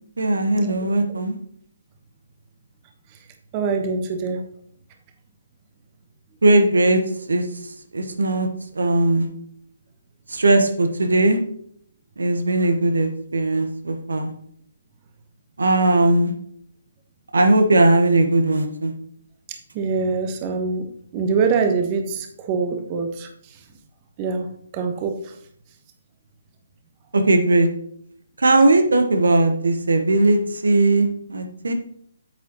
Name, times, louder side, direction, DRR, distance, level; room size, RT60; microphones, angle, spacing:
voice 1, 0.2-1.4 6.4-7.0 7.3-7.5 7.9-8.5 8.7-9.3 10.3-11.4 12.2-14.3 15.6-16.3 17.3-18.9 27.1-27.7 28.4-31.7, right 2 dB, 70° right, 6 dB, 1.1 m, -18 dB
voice 2, 3.5-4.4 19.7-20.8 21.1-23.3 24.2-24.5 24.7-25.1, right 5 dB, 30° right, 4 dB, 1.1 m, -23 dB
8.9 x 7.3 x 3.0 m, 0.67 s
figure-of-eight pair, 140°, 0 cm